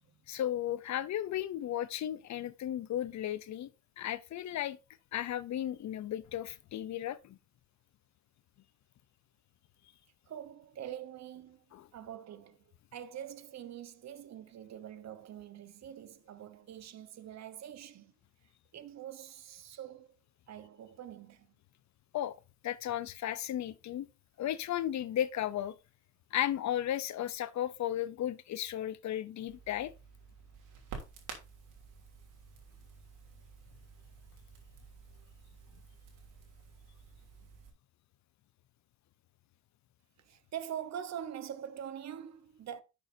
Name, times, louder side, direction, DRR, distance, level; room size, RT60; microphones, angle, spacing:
voice 1, 0.3-3.7 4.0-4.8 5.1-7.4 11.7-11.9 22.1-22.4 22.6-24.1 24.4-25.7 26.3-29.9, left 11 dB, 65° left, 0.8 m, -35 dB
voice 2, 10.3-11.6 11.9-12.6 12.9-18.1 18.7-20.1 20.5-21.5 40.2-42.8, right 10 dB, 60° right, 1.2 m, -44 dB
Crackle, 29.5-37.7, right 5 dB, 85° right, 3.2 m, -51 dB
11.5 x 7.0 x 2.8 m
cardioid pair, 90°, 30 cm